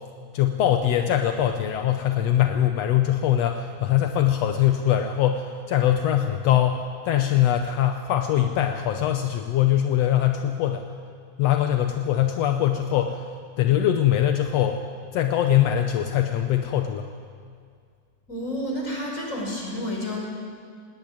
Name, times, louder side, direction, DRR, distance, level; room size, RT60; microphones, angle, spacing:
voice 1, 0.0-10.8 11.4-13.3 13.6-14.8 15.1-17.1, left 11 dB, 70° left, 5 dB, 1.6 m, -22 dB
voice 2, 18.3-20.2, left 1 dB, 20° left, -1 dB, 5.6 m, -30 dB
19.0 x 18.0 x 9.6 m, 2.1 s
omnidirectional pair, 3.8 m